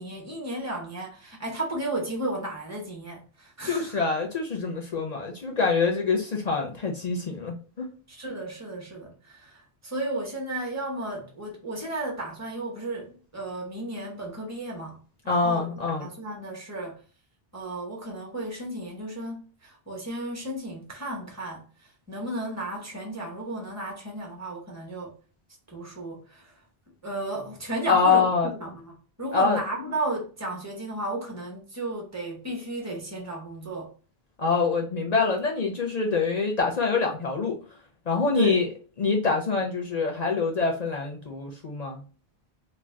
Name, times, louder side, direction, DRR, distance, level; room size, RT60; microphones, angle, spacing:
voice 1, 0.0-4.0 8.1-17.0 17.5-25.1 25.7-26.6 27.0-28.3 28.6-33.9 38.3-38.5, right 2 dB, 15° right, 0.8 m, -34 dB
voice 2, 3.6-7.9 15.3-16.1 27.9-28.5 29.3-29.6 34.4-37.6 38.1-38.7 39.0-42.0, left 4 dB, 50° left, 0.5 m, -25 dB
2.5 x 2.1 x 3.2 m
omnidirectional pair, 1.0 m